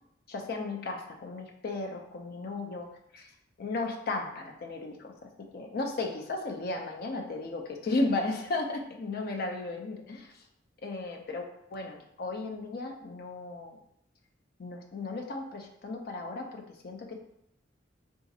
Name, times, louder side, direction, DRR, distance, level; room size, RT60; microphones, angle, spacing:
voice 1, 0.3-2.9 3.1-3.3 3.6-5.1 5.5-10.5 10.8-13.8 14.6-17.2, left 2 dB, 55° left, 2 dB, 0.5 m, -35 dB
3.9 x 2.4 x 2.7 m, 0.76 s
head